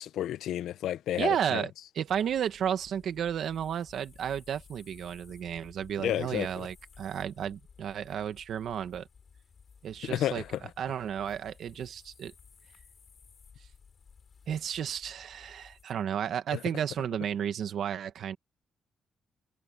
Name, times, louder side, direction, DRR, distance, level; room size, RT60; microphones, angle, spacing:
voice 1, 0.0-1.7 6.0-6.7 10.0-10.6 16.5-16.6, left 12 dB, 85° left, 0.6 m, -31 dB
voice 2, 1.2-9.1 9.8-10.4 10.8-12.3 14.5-18.4, right 9 dB, 60° right, 1.6 m, -33 dB
sound 1, 2.1-15.8, left 6 dB, 35° left, 3.4 m, -56 dB
cardioid pair, 155°, 0 cm